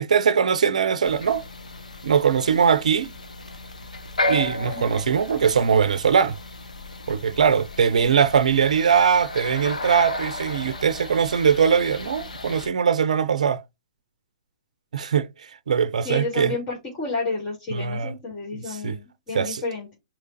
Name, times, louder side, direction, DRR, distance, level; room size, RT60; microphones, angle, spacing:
voice 1, 0.0-1.4 2.0-3.1 4.3-6.4 7.1-13.6 14.9-16.6 17.7-18.1 18.5-19.0 19.3-19.6, right 7 dB, 75° right, 0.5 m, -21 dB
sound 1, 1.0-12.7, left 2 dB, 85° left, 0.7 m, -34 dB
voice 2, 16.0-20.0, left 3 dB, 30° left, 2.8 m, -30 dB
4.9 x 2.9 x 2.7 m
hypercardioid pair, 125°, 4 cm